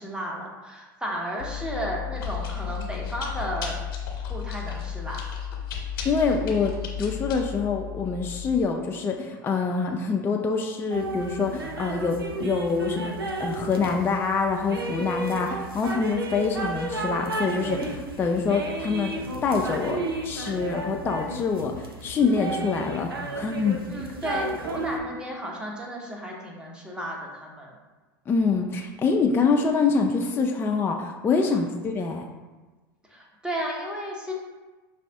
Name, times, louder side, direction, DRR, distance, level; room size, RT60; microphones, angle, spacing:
voice 1, 0.0-3.8 4.3-5.2 23.9-27.7 31.4-31.6 33.1-34.3, equal, 5° right, -2 dB, 1.0 m, -33 dB
Chewing mastication, 1.4-8.6, left 8 dB, 65° left, 0.9 m, -33 dB
voice 2, 6.0-13.1 13.4-19.1 19.4-23.8 28.3-32.2, left 4 dB, 20° left, 2 dB, 0.3 m, -25 dB
sound 1, 10.9-25.0, right 2 dB, 90° right, 0.5 m, -32 dB
4.8 x 2.5 x 3.4 m, 1.2 s
hypercardioid pair, 90°, 12 cm